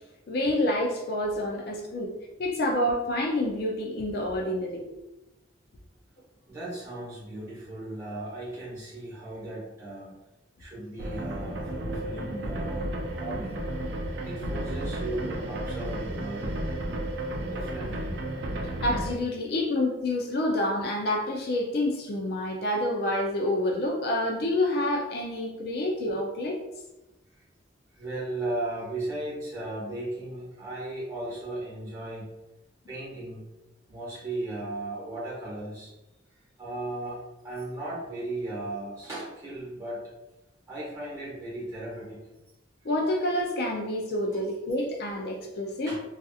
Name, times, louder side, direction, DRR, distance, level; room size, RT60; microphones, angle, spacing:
voice 1, 0.3-4.9 18.8-26.6 42.8-45.9, left 1 dB, 50° left, 0 dB, 0.4 m, -28 dB
voice 2, 6.5-10.1 10.6-13.6 14.2-16.6 17.5-18.2 27.9-32.3 32.9-33.4 33.9-35.9 36.3-40.1 40.7-42.2 44.3-44.4 45.9-46.0, right 2 dB, 15° right, -7 dB, 1.1 m, -36 dB
sound 1, 11.0-19.1, right 1 dB, 60° right, 0.4 m, -33 dB
2.7 x 2.4 x 2.3 m, 0.97 s
head